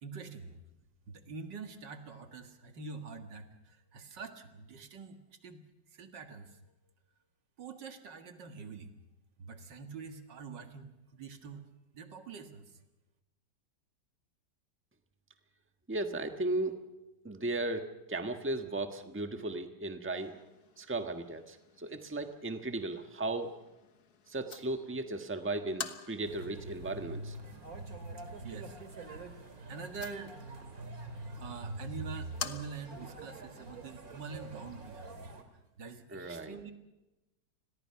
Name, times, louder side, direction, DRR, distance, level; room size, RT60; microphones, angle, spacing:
voice 1, 0.0-0.6 1.1-5.6 5.9-6.6 7.6-8.9 9.4-11.7 11.9-12.8 28.4-28.8 29.7-30.4 31.4-35.1 35.8-36.7, right 4 dB, 80° right, 6 dB, 2.4 m, -45 dB
voice 2, 15.9-16.8 17.2-20.4 20.8-23.5 24.3-27.4 36.1-36.5, right 2 dB, 10° right, 6 dB, 1.3 m, -36 dB
sound 1, 20.1-33.1, left 7 dB, 65° left, 1.7 m, -49 dB
sound 2, 26.2-35.4, right 2 dB, 55° right, 2.7 m, -45 dB
29.5 x 21.5 x 5.8 m, 1.0 s
omnidirectional pair, 1.9 m